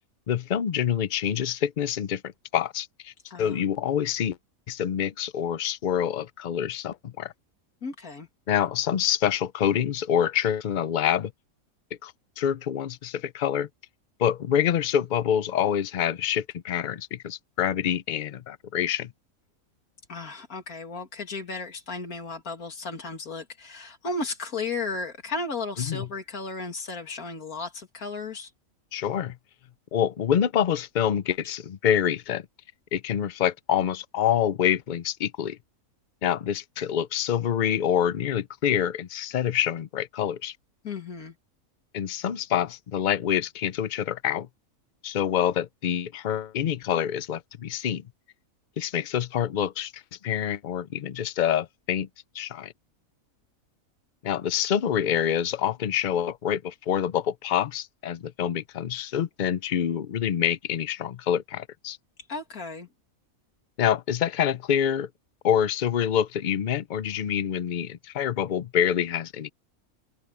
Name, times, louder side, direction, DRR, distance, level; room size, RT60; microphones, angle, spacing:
voice 1, 0.3-3.1 3.4-4.4 4.7-7.3 8.5-11.3 12.0-13.7 14.2-19.1 25.9-26.1 28.9-29.4 29.9-32.5 32.9-35.6 36.2-40.5 41.9-44.5 45.0-48.0 48.8-52.1 52.3-52.7 54.2-62.0 63.8-65.1 65.4-69.5, left 9 dB, 50° left, 0.6 m, -26 dB
voice 2, 3.3-3.6 7.8-8.3 20.1-28.5 40.8-41.3 62.3-62.9, left 3 dB, 90° left, 2.8 m, -34 dB
omnidirectional pair, 1.5 m